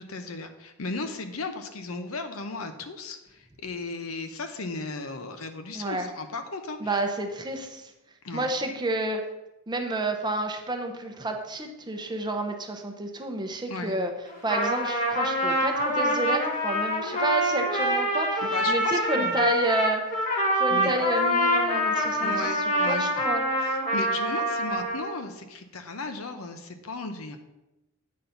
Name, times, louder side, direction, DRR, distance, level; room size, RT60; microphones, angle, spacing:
voice 1, 0.0-7.0 8.2-8.5 13.7-14.0 18.4-19.4 20.7-20.9 22.2-23.3 23.6-27.4, left 3 dB, 75° left, 7 dB, 0.8 m, -36 dB
voice 2, 5.7-6.1 6.8-7.9 8.3-9.2 9.7-14.1 14.4-20.0 20.6-22.5 22.9-23.4, right 1 dB, 20° right, 4 dB, 0.7 m, -30 dB
Trumpet, 14.3-25.2, equal, 35° left, 1.5 m, -26 dB
8.6 x 4.0 x 5.7 m, 0.97 s
head